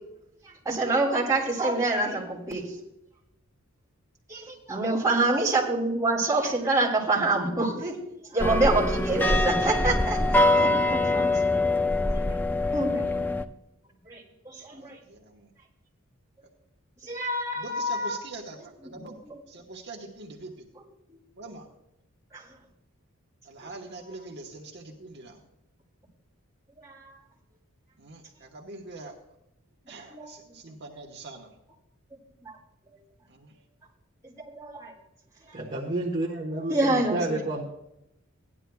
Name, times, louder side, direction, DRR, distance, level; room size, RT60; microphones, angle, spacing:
voice 1, 0.6-2.7 4.3-8.0 8.3-11.3 12.7-13.2 14.1-15.0 17.0-18.2 19.3-19.4 22.3-22.4 23.6-23.7 26.8-27.2 30.1-30.3 32.4-32.5 34.4-34.9 35.5-35.6 36.7-37.4, right 2 dB, 15° right, -5 dB, 3.0 m, -27 dB
voice 2, 4.9-5.4 12.5-12.6 14.7-15.5 17.5-19.2 19.5-20.7 21.4-21.7 23.4-25.4 28.0-29.1 29.9-31.5 33.3-33.6, right 2 dB, 55° right, -1 dB, 1.2 m, -44 dB
sound 1, 8.4-13.4, left 2 dB, 10° left, 0.4 m, -24 dB
voice 3, 35.5-37.6, right 2 dB, 35° right, -3 dB, 1.3 m, -30 dB
17.0 x 11.0 x 2.3 m, 0.85 s
head